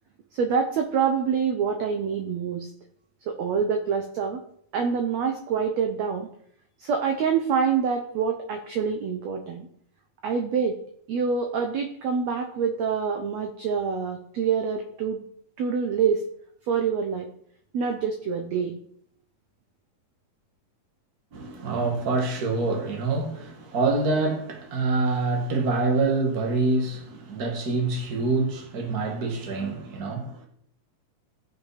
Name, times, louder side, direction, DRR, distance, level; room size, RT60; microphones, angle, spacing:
voice 1, 0.3-2.7 3.3-4.4 4.7-6.3 6.8-9.7 10.2-10.8 11.1-15.2 15.6-16.2 16.7-17.3 17.7-18.8, right 6 dB, 65° right, 1.8 m, -26 dB
voice 2, 21.3-30.5, right 3 dB, 35° right, 2.0 m, -26 dB
16.0 x 5.9 x 5.0 m
omnidirectional pair, 4.0 m